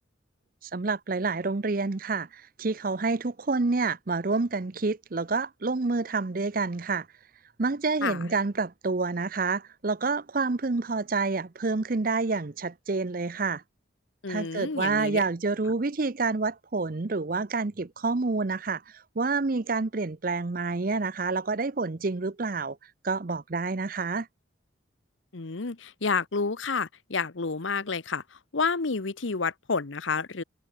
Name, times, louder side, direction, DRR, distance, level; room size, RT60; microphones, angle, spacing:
voice 1, 0.7-7.1 7.6-13.6 14.3-22.8 23.0-24.3, right 3 dB, 45° right, 0.7 m, -28 dB
voice 2, 14.2-15.2 25.3-30.4, left 4 dB, 75° left, 1.0 m, -30 dB
head